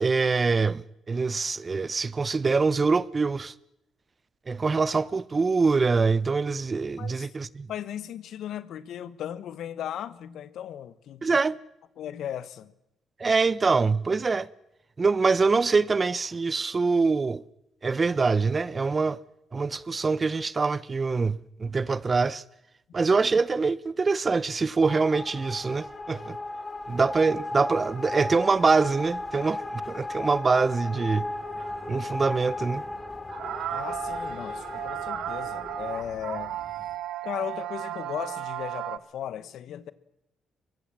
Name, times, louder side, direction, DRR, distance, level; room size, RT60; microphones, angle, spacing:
voice 1, 0.0-3.5 4.5-7.7 11.2-11.6 13.2-14.5 15.0-17.4 17.8-19.2 19.5-22.4 22.9-26.4 26.9-31.3 31.9-32.8, right 4 dB, 30° right, 0.8 m, -24 dB
voice 2, 7.0-7.3 7.7-11.4 12.0-12.7 33.7-36.6 37.2-39.9, left 10 dB, 75° left, 1.1 m, -36 dB
sound 1, 24.9-36.0, left 2 dB, 25° left, 3.8 m, -36 dB
sound 2, 31.1-37.0, left 1 dB, 5° left, 4.8 m, -51 dB
sound 3, 31.6-31.8 32.5-32.6 33.3-39.0, right 13 dB, 80° right, 0.8 m, -35 dB
23.5 x 20.0 x 7.4 m
cardioid pair, 90°, 0 cm